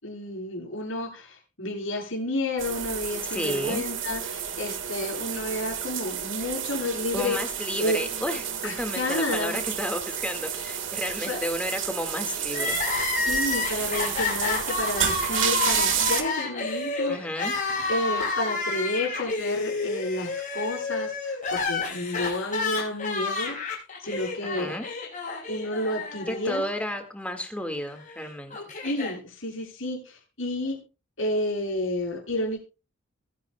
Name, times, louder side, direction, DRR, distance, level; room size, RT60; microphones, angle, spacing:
voice 1, 0.0-7.4 7.8-8.0 8.6-9.6 11.3-11.4 13.2-17.4 17.9-23.7 24.0-24.8 25.5-26.6 28.8-30.8 31.2-32.6, left 1 dB, 65° left, -2 dB, 8.0 m, -31 dB
sound 1, 2.6-16.2, right 9 dB, 60° right, 1.6 m, -30 dB
voice 2, 3.2-3.9 7.1-12.8 17.1-17.5 24.4-24.9 26.3-28.6, left 1 dB, 5° left, 5 dB, 1.7 m, -32 dB
Crying sobbing, 12.5-26.6 26.9-27.0 28.0-29.1, left 3 dB, 35° left, 6.1 m, -30 dB
23.0 x 10.5 x 2.2 m, 0.32 s
head